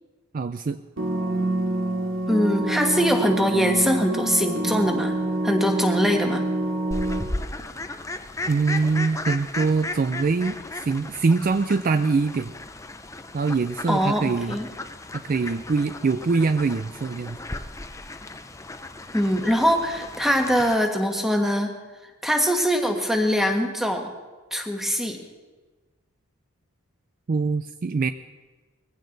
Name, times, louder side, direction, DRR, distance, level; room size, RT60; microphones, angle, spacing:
voice 1, 0.3-0.8 8.5-12.5 13.3-14.6 15.1-17.4 27.3-28.1, right 4 dB, 40° right, 11 dB, 0.4 m, -23 dB
sound 1, 1.0-7.2, right 2 dB, 65° right, 2.2 m, -26 dB
voice 2, 2.3-5.2 5.4-6.4 13.9-14.7 19.1-21.7 22.2-24.1 24.5-25.2, equal, ahead, 3 dB, 1.5 m, -22 dB
Fowl, 6.9-20.8, left 2 dB, 15° left, 0.6 m, -36 dB
21.0 x 15.5 x 4.0 m, 1.3 s
head